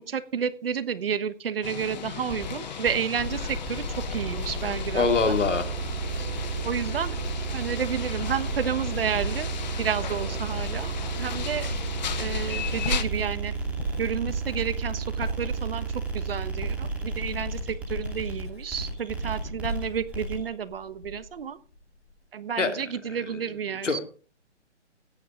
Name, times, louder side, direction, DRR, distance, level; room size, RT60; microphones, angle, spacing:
voice 1, 0.1-5.4 6.6-7.2 7.5-9.5 9.8-11.7 12.1-13.5 14.0-21.6 22.3-24.0, right 7 dB, 50° right, 13 dB, 1.3 m, -31 dB
sound 1, 1.6-13.0, left 8 dB, 35° left, 1.1 m, -36 dB
sound 2, 2.3-20.5, right 4 dB, 5° right, 2.4 m, -33 dB
voice 2, 4.9-5.7 22.6-22.7 23.8-24.0, left 4 dB, 80° left, 7 dB, 2.7 m, -23 dB
Writing, 5.1-21.4 21.7-22.1, equal, 60° left, 6.2 m, -38 dB
16.5 x 9.9 x 3.8 m, 0.39 s
hypercardioid pair, 160°, 36 cm